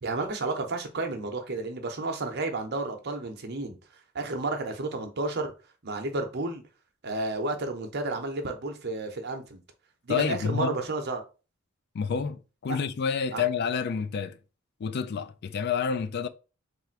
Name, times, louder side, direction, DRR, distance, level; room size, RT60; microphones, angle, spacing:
voice 1, 0.0-3.8 4.1-5.5 5.8-6.6 7.0-9.6 10.0-11.2 12.7-12.8 13.3-13.4, right 2 dB, 50° right, 0.8 m, -31 dB
voice 2, 10.1-10.8 11.9-14.4 14.8-16.3, left 6 dB, 50° left, 0.3 m, -29 dB
3.4 x 2.5 x 4.5 m
head